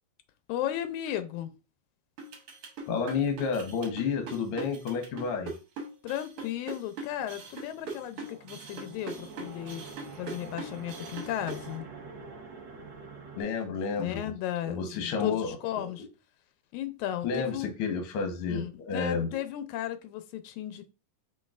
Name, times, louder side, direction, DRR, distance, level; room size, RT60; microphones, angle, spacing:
voice 1, 0.5-1.5 6.0-9.9 10.2-11.9 14.0-16.1 16.7-17.7 18.5-20.9, left 11 dB, 85° left, 2.0 m, -35 dB
sound 1, 2.2-11.7, right 3 dB, 60° right, 1.6 m, -41 dB
voice 2, 2.9-5.5 13.3-14.2 14.6-15.5 15.8-15.9 17.2-19.3, left 5 dB, 60° left, 1.6 m, -30 dB
sound 2, 7.1-13.4, right 4 dB, 75° right, 1.0 m, -46 dB
5.2 x 3.8 x 2.4 m
omnidirectional pair, 3.3 m